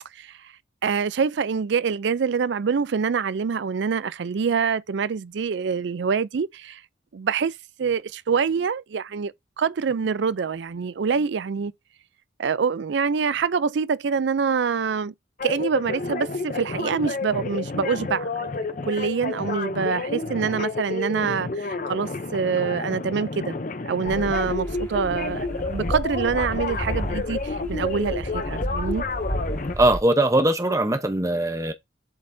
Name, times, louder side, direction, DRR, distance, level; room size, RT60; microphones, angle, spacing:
voice 1, 0.8-6.8 7.1-11.7 12.4-15.1 15.4-18.4 18.8-23.6 23.9-29.0, right 6 dB, 65° right, 0.4 m, -25 dB
sound 1, 15.4-29.7, left 3 dB, 40° left, 0.6 m, -30 dB
sound 2, 24.1-30.0, equal, 15° left, 2.0 m, -32 dB
voice 2, 29.8-31.7, right 1 dB, 15° right, 0.8 m, -21 dB
7.9 x 5.4 x 2.6 m
head